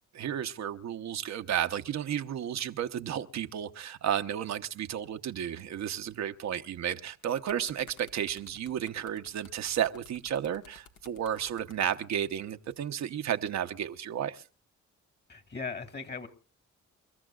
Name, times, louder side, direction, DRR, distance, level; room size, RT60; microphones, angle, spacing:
voice 1, 0.1-14.4, right 9 dB, 65° right, 1.0 m, -33 dB
sound 1, 7.1-11.8 12.7-12.9, left 6 dB, 80° left, 1.7 m, -55 dB
voice 2, 15.3-16.3, left 4 dB, 35° left, 2.3 m, -38 dB
28.5 x 13.5 x 2.4 m
cardioid pair, 90°, 30 cm